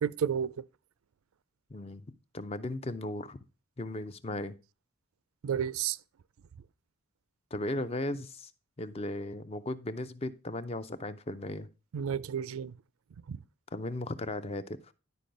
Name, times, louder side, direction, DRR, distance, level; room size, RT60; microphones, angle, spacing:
voice 1, 0.0-0.6 5.4-6.0 11.9-12.7 13.3-13.4, right 8 dB, 80° right, 0.4 m, -31 dB
voice 2, 1.7-2.1 2.3-3.4 3.8-4.5 7.5-8.5 8.8-11.7 13.7-14.9, left 2 dB, 30° left, 0.4 m, -36 dB
10.5 x 4.6 x 5.1 m
head